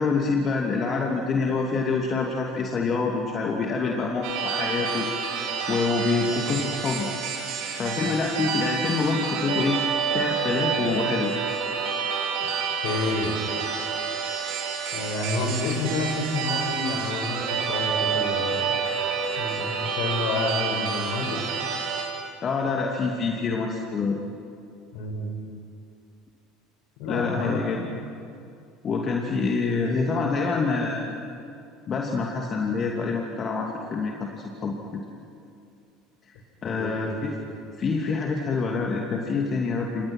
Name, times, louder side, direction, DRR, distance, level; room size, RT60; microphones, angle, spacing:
voice 1, 0.0-5.1 5.7-7.1 7.8-9.8 10.1-11.3 22.4-24.2 27.1-27.9 28.8-31.2 31.9-34.8 36.3-36.4 36.6-37.4 37.8-40.1, left 4 dB, 35° left, 0 dB, 2.7 m, -26 dB
sound 1, 4.2-22.0, right 6 dB, 60° right, 5.0 m, -28 dB
voice 2, 12.8-13.4 14.9-18.8 19.4-21.4 24.9-25.3 27.0-27.8 36.8-37.2, left 2 dB, 60° left, 3 dB, 6.0 m, -29 dB
29.5 x 28.5 x 6.2 m, 2.5 s
figure-of-eight pair, 70°, 0 cm